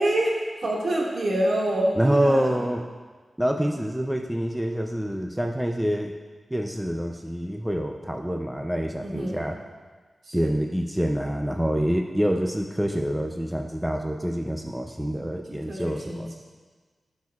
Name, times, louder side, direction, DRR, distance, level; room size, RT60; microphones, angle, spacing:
voice 1, 0.0-2.6 9.0-9.4 10.2-10.5 15.5-16.3, right 1 dB, 65° right, -4 dB, 1.9 m, -26 dB
voice 2, 2.0-2.9 3.4-6.1 6.5-9.6 10.3-16.3, equal, 5° right, 3 dB, 0.4 m, -26 dB
15.0 x 6.3 x 2.4 m, 1.4 s
wide cardioid pair, 115°, 0 cm